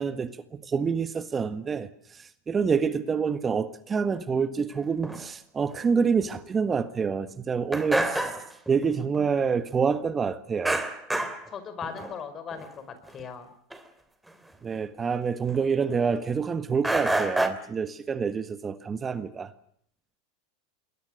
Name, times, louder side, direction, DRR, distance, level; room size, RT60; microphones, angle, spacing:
voice 1, 0.0-8.3 8.7-10.8 14.6-19.5, right 6 dB, 25° right, 11 dB, 1.6 m, -27 dB
sound 1, 5.0-5.3 5.7-5.8 6.2-6.3 6.6-6.7 7.0-7.1 7.7-8.9 9.1-9.2 10.6-11.5 11.8-12.1 12.5-12.7 13.1-13.2 13.7-13.8 14.3-14.4 15.5-16.1 16.8-17.5, right 1 dB, 5° right, 3.0 m, -28 dB
voice 2, 11.5-12.8 13.1-13.5, left 6 dB, 35° left, 11 dB, 5.1 m, -38 dB
27.5 x 21.5 x 6.5 m, 0.64 s
hypercardioid pair, 100°, 0 cm